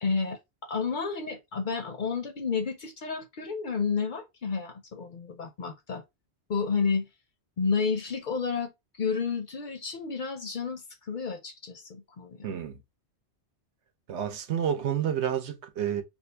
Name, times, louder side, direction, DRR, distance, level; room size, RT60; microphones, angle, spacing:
voice 1, 0.0-6.0 6.5-7.1 7.6-8.7 9.0-12.5, left 5 dB, 55° left, 0.6 m, -31 dB
voice 2, 12.4-12.8 14.1-16.0, right 9 dB, 80° right, 0.9 m, -29 dB
2.6 x 2.5 x 3.2 m
omnidirectional pair, 1.1 m